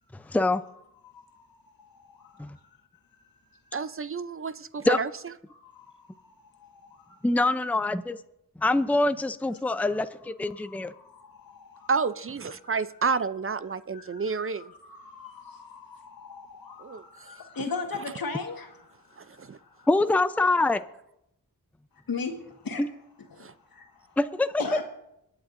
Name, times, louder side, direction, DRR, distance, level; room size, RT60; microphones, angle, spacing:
voice 1, 0.1-0.6 2.4-2.6 4.8-5.0 7.2-8.2 8.6-10.9 19.9-20.9 22.8-22.9 24.2-24.6, left 2 dB, 5° left, 12 dB, 0.6 m, -24 dB
voice 2, 1.0-2.7 3.5-3.8 5.5-7.2 10.5-11.9 12.6-12.9 13.6-19.9 22.1-22.8 23.2-24.2 24.6-24.8, left 4 dB, 75° left, 4 dB, 1.7 m, -40 dB
voice 3, 3.7-5.1 11.9-14.7 16.8-17.0 19.4-19.6 23.4-23.5, right 5 dB, 40° right, 14 dB, 0.5 m, -30 dB
25.5 x 8.9 x 2.6 m, 0.82 s
cardioid pair, 40°, 35 cm